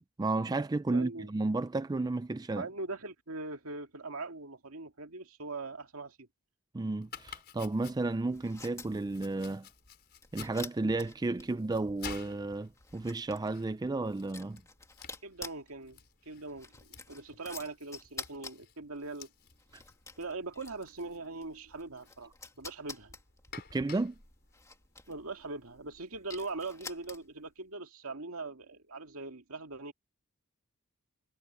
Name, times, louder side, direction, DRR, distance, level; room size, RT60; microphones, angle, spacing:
voice 1, 0.2-2.7 6.7-9.7 10.3-14.6 23.7-24.2, right 2 dB, 20° right, 0.4 m, -32 dB
voice 2, 0.9-1.3 2.5-6.3 15.2-19.3 20.2-22.3 22.6-23.1 25.1-29.9, right 3 dB, 75° right, 2.3 m, -41 dB
Domestic sounds home sounds, 7.0-25.5, left 6 dB, 50° left, 4.5 m, -53 dB
sound 1, 8.3-27.5, left 4 dB, 15° left, 2.2 m, -50 dB
head